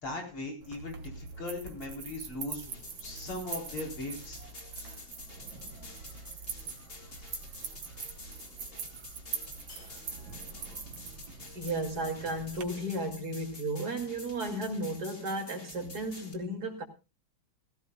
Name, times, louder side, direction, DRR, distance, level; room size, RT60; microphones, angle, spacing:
voice 1, 0.0-4.4, left 2 dB, 85° left, 5.1 m, -39 dB
sound 1, 0.6-12.6, right 5 dB, 70° right, 2.3 m, -43 dB
sound 2, 2.6-16.3, left 2 dB, 30° left, 2.0 m, -49 dB
sound 3, 8.3-8.4 9.7-10.4 10.7-10.8 12.5-13.4, left 3 dB, 65° left, 3.8 m, -58 dB
voice 2, 11.5-16.8, right 1 dB, 50° right, 2.9 m, -34 dB
17.5 x 16.0 x 2.3 m
omnidirectional pair, 2.3 m